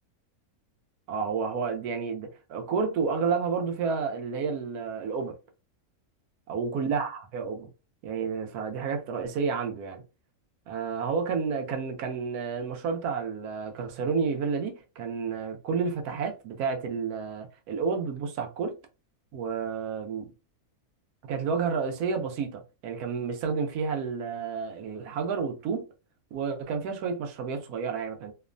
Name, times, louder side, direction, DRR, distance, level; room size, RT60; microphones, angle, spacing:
voice 1, 1.1-5.4 6.5-7.7 8.0-10.0 10.7-18.7 19.3-20.3 21.2-25.8 26.3-28.3, right 5 dB, 85° right, 1.1 m, -30 dB
2.9 x 2.1 x 2.4 m
omnidirectional pair, 1.6 m